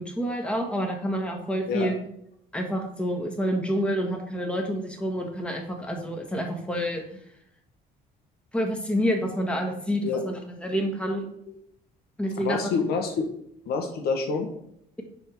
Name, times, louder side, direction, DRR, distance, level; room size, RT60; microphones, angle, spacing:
voice 1, 0.0-1.9 2.5-7.0 8.5-10.3 10.6-11.3 12.2-12.9, equal, 5° left, 2 dB, 1.5 m, -28 dB
voice 2, 12.4-13.3 13.7-14.5, left 5 dB, 70° left, 4 dB, 1.3 m, -27 dB
9.7 x 3.7 x 4.6 m, 0.73 s
cardioid pair, 110°, 17 cm